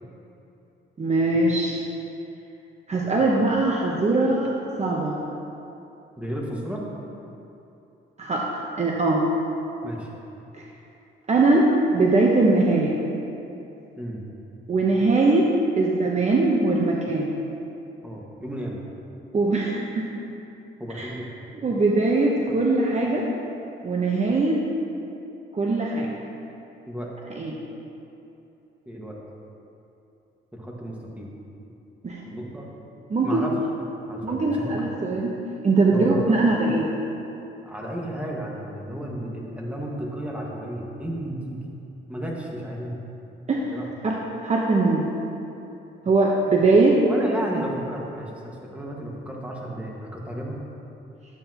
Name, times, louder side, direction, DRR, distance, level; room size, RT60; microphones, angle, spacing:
voice 1, 1.0-1.8 2.9-5.2 8.2-8.4 8.8-9.2 11.3-13.0 14.7-15.5 15.8-17.4 19.3-20.1 21.0-21.1 21.6-23.3 23.8-24.6 25.5-26.1 27.4-27.6 32.0-32.2 33.1-33.4 34.2-35.3 35.6-36.9 43.5-43.8 44.0-45.1 46.0-47.0, right 2 dB, 35° right, -2 dB, 1.0 m, -21 dB
voice 2, 6.2-6.8 9.8-10.1 14.0-14.2 18.0-18.8 20.8-21.3 26.9-27.1 28.9-29.2 30.5-31.3 32.3-32.7 33.2-33.6 34.1-34.7 35.9-36.4 37.6-41.6 42.1-43.0 43.7-43.9 47.1-48.3 48.6-50.6, right 1 dB, 5° right, -3 dB, 1.7 m, -33 dB
11.5 x 8.6 x 3.0 m, 2.9 s
cardioid pair, 90°, 20 cm